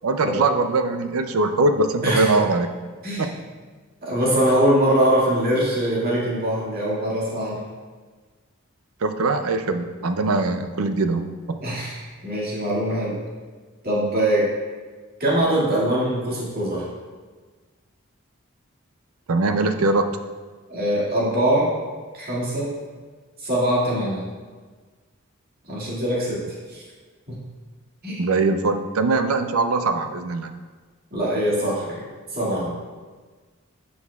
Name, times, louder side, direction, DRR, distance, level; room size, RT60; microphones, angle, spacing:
voice 1, 0.0-2.7 3.2-3.3 9.0-11.6 19.3-20.1 28.2-30.5, right 3 dB, 80° right, 8 dB, 0.5 m, -22 dB
voice 2, 3.0-3.3 4.0-7.6 11.6-13.2 13.8-14.5 15.2-16.9 20.7-21.7 22.1-22.7 23.4-24.3 25.7-26.4 26.7-26.8 27.3-27.4 28.0-28.2 31.1-31.9 32.3-32.8, right 1 dB, 45° right, -6 dB, 2.2 m, -22 dB
11.0 x 6.2 x 2.4 m, 1.4 s
head